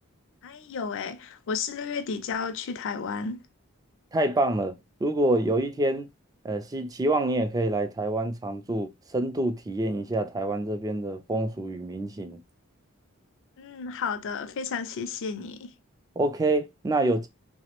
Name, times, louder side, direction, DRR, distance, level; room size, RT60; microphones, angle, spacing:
voice 1, 0.4-3.4 13.6-15.7, left 5 dB, 60° left, 0.4 m, -32 dB
voice 2, 4.1-6.1 6.4-12.4 16.2-17.3, right 1 dB, 15° right, 0.3 m, -27 dB
3.2 x 2.0 x 2.9 m
head